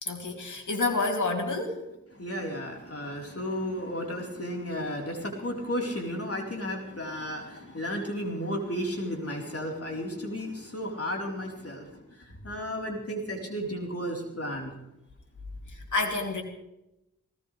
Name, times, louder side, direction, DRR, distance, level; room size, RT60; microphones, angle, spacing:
voice 1, 0.0-1.8 15.7-16.4, left 3 dB, 75° left, 2 dB, 3.2 m, -29 dB
voice 2, 2.1-14.8, equal, 50° left, 0 dB, 4.3 m, -33 dB
19.0 x 18.5 x 3.4 m, 0.90 s
cardioid pair, 40°, 30 cm